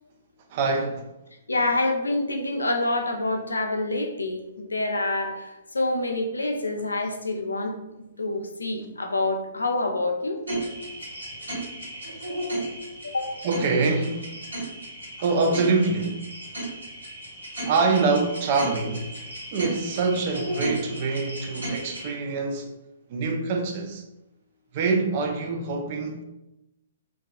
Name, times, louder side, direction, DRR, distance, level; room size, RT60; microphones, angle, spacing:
voice 1, 0.5-1.1 13.4-14.5 15.2-16.3 17.6-19.2 19.5-22.7 23.1-24.0 24.7-26.2, right 3 dB, 40° right, 0.3 m, -25 dB
voice 2, 1.5-7.7 8.2-10.4 13.0-13.4, left 2 dB, 75° left, 0.3 m, -27 dB
sound 1, 10.5-22.1, right 1 dB, 75° right, 1.1 m, -35 dB
2.2 x 2.2 x 2.5 m
figure-of-eight pair, 120°, 0 cm